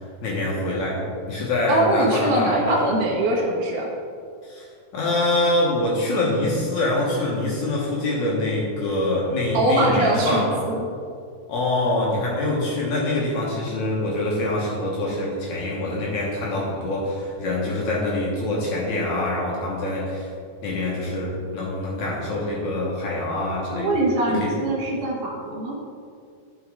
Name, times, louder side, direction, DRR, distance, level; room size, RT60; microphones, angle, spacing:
voice 1, 0.2-2.9 4.4-4.7 4.9-10.6 11.5-20.3 20.6-24.0 24.4-24.5, left 1 dB, 60° left, -4 dB, 2.5 m, -25 dB
voice 2, 1.7-3.9 9.5-10.9 23.7-25.8, right 1 dB, 70° right, -2 dB, 2.5 m, -22 dB
11.0 x 6.2 x 3.7 m, 2.3 s
omnidirectional pair, 4.1 m